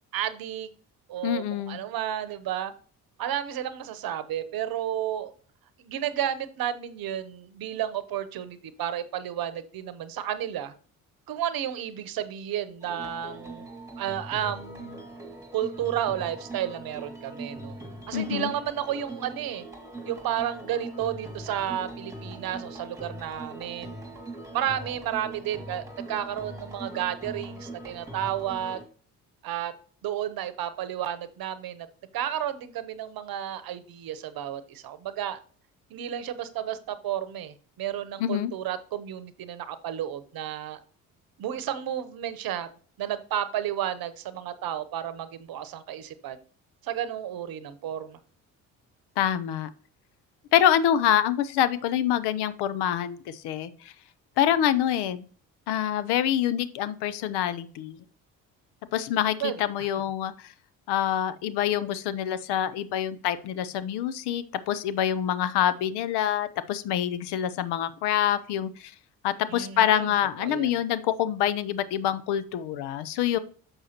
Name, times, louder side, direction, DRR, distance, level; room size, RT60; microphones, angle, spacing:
voice 1, 0.1-0.7 1.1-2.7 3.2-5.3 5.8-10.7 11.3-13.7 14.0-15.0 15.5-17.8 18.1-19.7 20.0-24.0 24.5-28.8 29.4-29.7 30.0-31.9 32.1-35.4 35.9-40.8 41.4-42.7 43.0-46.4 46.8-48.2 59.4-59.6 69.5-70.1 70.4-70.7, right 10 dB, 55° right, 13 dB, 0.9 m, -32 dB
voice 2, 1.2-1.8 18.1-18.5 38.2-38.5 49.2-49.7 50.5-53.9 54.4-55.2 55.7-58.0 58.9-60.5 60.9-68.9 69.2-73.4, left 10 dB, 70° left, 14 dB, 0.7 m, -26 dB
sound 1, 12.8-28.8, right 1 dB, 5° right, 2.0 m, -41 dB
6.4 x 6.2 x 2.9 m, 0.42 s
hypercardioid pair, 60°, 41 cm